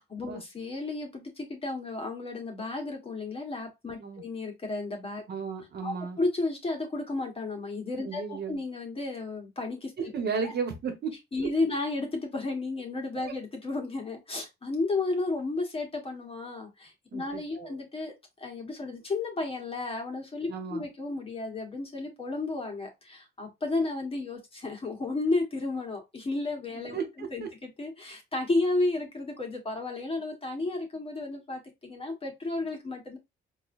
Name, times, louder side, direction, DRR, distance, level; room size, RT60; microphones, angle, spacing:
voice 1, 0.0-5.3 5.8-10.1 10.4-10.5 11.3-33.2, left 2 dB, 30° left, 1.5 m, -33 dB
voice 2, 5.3-6.2 8.0-8.6 10.0-11.1 11.4-11.5 17.1-17.7 20.5-20.9 26.9-27.5, right 5 dB, 55° right, 1.4 m, -34 dB
4.6 x 2.6 x 2.6 m
cardioid pair, 90°, 20 cm